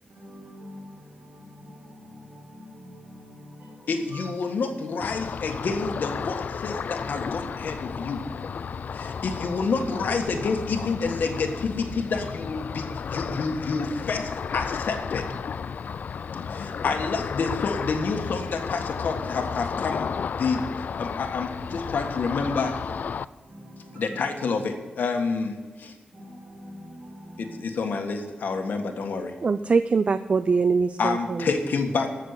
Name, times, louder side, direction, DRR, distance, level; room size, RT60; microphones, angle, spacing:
voice 1, 0.0-4.3 16.2-16.9 23.4-24.1 26.1-27.6, equal, 70° right, 5.1 m, -45 dB
voice 2, 3.9-8.2 8.9-15.2 16.5-22.8 23.9-25.9 27.4-29.3 31.0-32.1, left 4 dB, 80° left, 1.6 m, -28 dB
Ocean, 5.0-23.3, left 6 dB, 60° left, 0.3 m, -33 dB
voice 3, 29.4-31.6, right 4 dB, 40° right, 0.4 m, -23 dB
14.5 x 6.6 x 8.4 m
wide cardioid pair, 145°, 3 cm